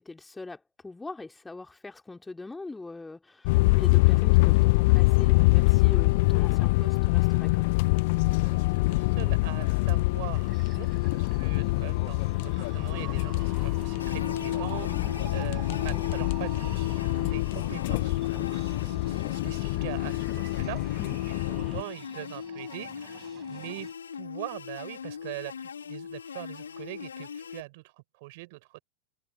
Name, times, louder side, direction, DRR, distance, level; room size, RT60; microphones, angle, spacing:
voice 1, 0.0-7.7 14.9-15.1 21.0-21.2, left 3 dB, 10° left, 3.4 m, -42 dB
sound 1, 3.5-21.8, left 24 dB, 50° left, 0.3 m, -25 dB
voice 2, 8.4-28.8, right 23 dB, 50° right, 5.6 m, -42 dB
sound 2, 10.2-23.9, right 13 dB, 30° right, 4.5 m, -49 dB
sound 3, 14.0-27.6, left 7 dB, 70° left, 2.3 m, -40 dB
figure-of-eight pair, 90°, 0 cm